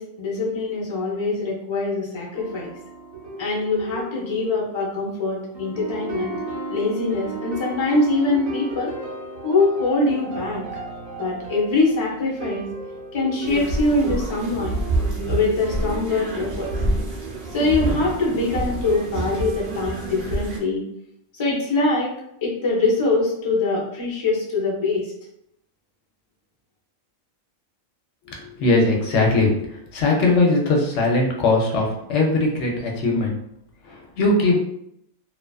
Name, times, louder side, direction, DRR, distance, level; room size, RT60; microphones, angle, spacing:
voice 1, 0.0-2.7 3.4-6.4 6.7-8.9 9.4-10.7 11.2-12.7 13.1-14.8 15.3-16.7 17.5-20.8 21.3-22.1 22.4-25.0, left 3 dB, 40° left, -4 dB, 0.4 m, -23 dB
sound 1, 2.3-20.4, right 3 dB, 75° right, 1.0 m, -36 dB
sound 2, 13.4-20.6, right 2 dB, 55° right, 0.6 m, -27 dB
voice 2, 28.3-33.4 33.8-34.6, left 2 dB, 65° left, -1 dB, 0.8 m, -20 dB
2.4 x 2.3 x 2.3 m, 0.74 s
omnidirectional pair, 1.4 m